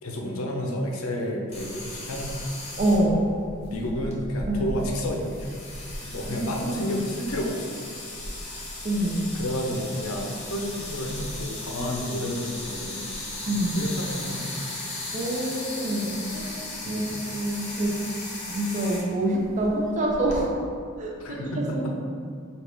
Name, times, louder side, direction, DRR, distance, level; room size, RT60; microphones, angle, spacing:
voice 1, 0.0-2.6 3.7-5.5 6.0-7.7 9.3-13.1 13.5-14.4 16.8-17.1 21.2-21.9, equal, 75° left, 0 dB, 0.6 m, -31 dB
sound 1, 1.5-20.4, left 2 dB, 30° left, 0.8 m, -36 dB
voice 2, 2.8-3.3 4.5-4.6 6.4-6.9 8.8-9.3 13.5-13.8 15.1-16.5 16.8-18.0 18.5-20.5 21.0-21.9, right 1 dB, 35° right, -1 dB, 0.6 m, -26 dB
4.8 x 2.4 x 3.4 m, 2.2 s
head